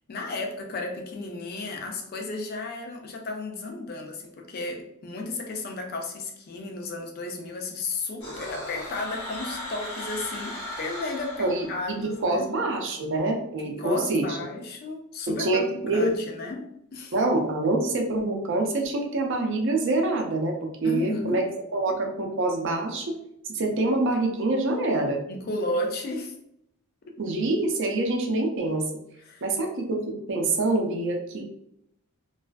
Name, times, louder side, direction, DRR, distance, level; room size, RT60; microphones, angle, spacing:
voice 1, 0.1-12.5 13.6-16.7 16.9-17.1 20.8-21.5 25.3-26.3 27.1-27.4 29.2-29.6, left 2 dB, 45° left, 2 dB, 0.4 m, -33 dB
sound 1, 8.2-12.2, left 1 dB, 80° left, 1.0 m, -37 dB
voice 2, 11.4-14.4 15.4-16.2 17.1-21.4 21.7-23.2 23.5-25.2 27.2-28.8 29.4-31.4, right 2 dB, 55° right, 2 dB, 0.4 m, -26 dB
2.4 x 2.3 x 2.2 m, 0.77 s
head